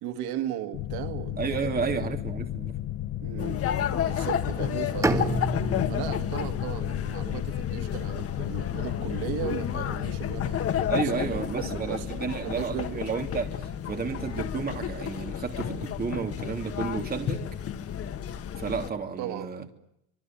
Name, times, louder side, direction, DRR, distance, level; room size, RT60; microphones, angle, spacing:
voice 1, 0.0-2.1 3.2-3.6 4.1-5.4 5.9-13.0 19.2-19.5, right 12 dB, 80° right, 2.2 m, -37 dB
sound 1, 0.7-14.0, left 13 dB, 60° left, 1.0 m, -35 dB
voice 2, 1.4-2.7 10.9-17.4 18.6-19.6, right 5 dB, 25° right, 2.9 m, -32 dB
sound 2, 3.4-18.9, left 9 dB, 40° left, 1.6 m, -32 dB
Bowed string instrument, 5.0-9.0, right 1 dB, 10° right, 2.1 m, -32 dB
26.0 x 23.0 x 8.9 m
cardioid pair, 160°, 38 cm